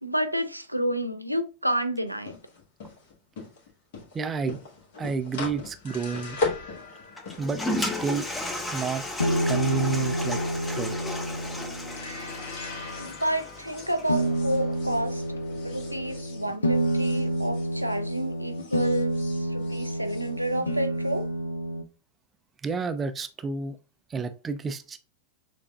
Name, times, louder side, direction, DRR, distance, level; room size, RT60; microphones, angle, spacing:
voice 1, 0.0-2.4 13.0-15.2 15.6-21.3, right 1 dB, 90° right, 0.4 m, -30 dB
sound 1, 2.1-18.3 18.5-21.1, left 3 dB, 50° left, 1.5 m, -40 dB
voice 2, 4.1-4.6 5.0-6.4 7.4-8.3 8.7-9.0 9.5-10.4 10.7-11.0 22.6-23.8 24.1-25.0, right 5 dB, 20° right, 0.4 m, -30 dB
Toilet flush, 7.2-14.1, left 1 dB, 10° left, 0.7 m, -34 dB
sound 2, 9.2-13.1 14.1-21.8, right 1 dB, 75° left, 0.6 m, -29 dB
6.7 x 2.5 x 2.3 m
figure-of-eight pair, 90°, 0 cm